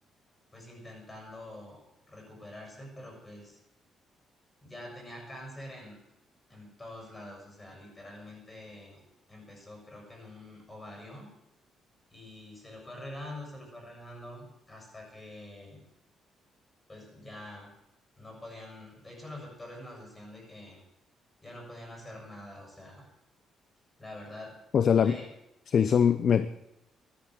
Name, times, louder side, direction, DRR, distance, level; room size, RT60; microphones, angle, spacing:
voice 1, 0.5-1.8 2.1-3.6 4.6-6.0 6.5-9.0 9.3-11.3 12.1-15.8 16.9-17.7 18.2-20.8 21.4-23.1 24.0-24.6 25.0-25.3, left 1 dB, 20° left, 1 dB, 6.9 m, -46 dB
voice 2, 24.7-25.2 25.7-26.5, left 7 dB, 55° left, 14 dB, 0.6 m, -22 dB
13.0 x 11.5 x 7.9 m, 0.86 s
cardioid pair, 90°, 0 cm